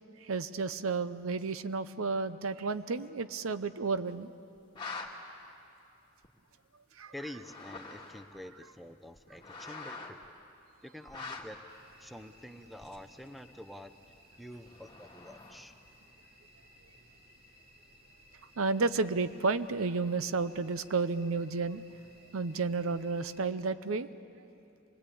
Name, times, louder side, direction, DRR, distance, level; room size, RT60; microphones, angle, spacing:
voice 1, 0.2-4.3 7.0-7.1 18.6-21.8 22.3-24.1, right 4 dB, 80° right, 13 dB, 0.7 m, -32 dB
sound 1, 4.6-5.1 6.2-6.3 7.3-8.4 9.2-10.2 11.1-11.6 12.8-13.2 14.7-15.8, left 4 dB, 25° left, 1.9 m, -44 dB
voice 2, 7.1-10.2 10.8-11.7 12.0-13.9 14.4-15.7, left 1 dB, ahead, 9 dB, 0.6 m, -47 dB
sound 2, 11.7-23.5, equal, 50° right, 2.9 m, -60 dB
25.5 x 21.0 x 8.5 m, 2.7 s
head